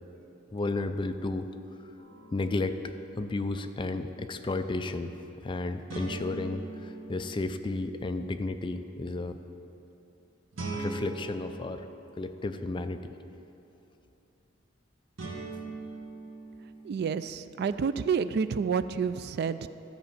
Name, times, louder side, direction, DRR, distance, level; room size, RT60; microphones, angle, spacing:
voice 1, 0.5-1.5 2.3-2.8 3.2-9.4 10.7-11.9 12.2-13.1, left 2 dB, 25° left, 8 dB, 0.4 m, -33 dB
sound 1, 2.0-2.9 5.9-8.1 10.5-12.7 15.2-17.4, right 3 dB, 80° right, 1.7 m, -41 dB
voice 2, 16.8-19.7, right 6 dB, 55° right, 13 dB, 0.3 m, -29 dB
13.0 x 5.1 x 7.2 m, 2.9 s
head